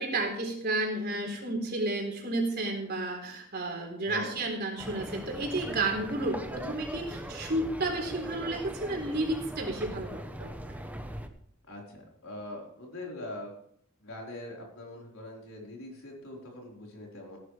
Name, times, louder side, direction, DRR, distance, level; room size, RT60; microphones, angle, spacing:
voice 1, 0.0-10.8, right 2 dB, 50° right, 1 dB, 3.8 m, -32 dB
voice 2, 4.0-4.4 11.7-13.5 14.0-17.4, left 1 dB, 80° left, -2 dB, 4.5 m, -43 dB
sound 1, 4.8-11.3, right 1 dB, 10° right, 0.9 m, -40 dB
18.0 x 10.5 x 3.4 m, 0.67 s
head